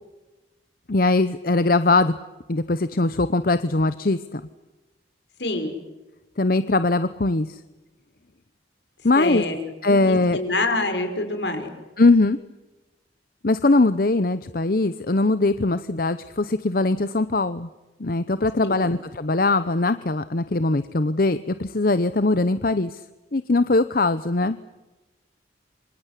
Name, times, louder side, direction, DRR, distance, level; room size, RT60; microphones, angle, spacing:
voice 1, 0.9-2.1 2.5-4.4 6.4-7.6 9.0-9.4 9.8-10.4 12.0-12.4 13.4-17.7 18.0-23.0 23.3-24.6, left 2 dB, 50° left, 13 dB, 0.8 m, -21 dB
voice 2, 5.4-5.7 9.2-9.6 9.9-11.7 18.6-18.7, left 2 dB, 75° left, 6 dB, 5.9 m, -26 dB
28.0 x 25.0 x 8.4 m, 1.1 s
head